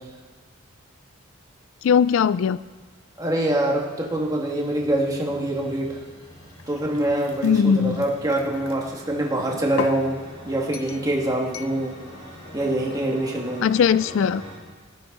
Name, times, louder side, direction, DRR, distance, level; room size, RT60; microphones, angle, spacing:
voice 1, 1.8-2.6 7.4-8.0 13.6-14.4, left 7 dB, 65° left, 16 dB, 0.3 m, -19 dB
sound 1, 3.0-14.5, equal, 25° left, 5.8 m, -44 dB
voice 2, 3.2-6.0 6.7-12.0 12.5-13.7, right 1 dB, 20° right, -1 dB, 2.0 m, -25 dB
sound 2, 6.5-8.8 9.4-10.1 10.7-11.1 11.5-11.8, left 5 dB, 85° left, 0.7 m, -36 dB
18.0 x 13.5 x 4.0 m, 1.4 s
head